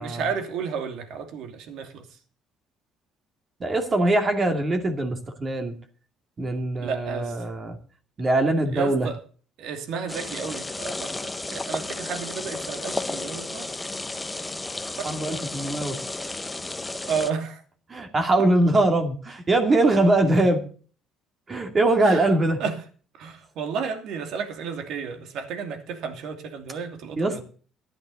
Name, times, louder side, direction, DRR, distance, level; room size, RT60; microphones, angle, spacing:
voice 1, 0.0-2.2 6.8-7.5 8.7-9.2 9.6-13.7 15.0-15.1 16.9-17.6 22.0-22.3 22.6-22.8 23.2-27.4, right 6 dB, 70° right, 2.7 m, -32 dB
voice 2, 3.6-5.7 6.4-7.8 8.2-9.1 15.0-16.0 17.9-20.6 21.5-22.6 27.2-27.4, right 2 dB, 25° right, 2.3 m, -22 dB
sound 1, 10.1-17.3, left 2 dB, 10° left, 0.8 m, -33 dB
14.5 x 10.5 x 4.1 m
cardioid pair, 125°, 0 cm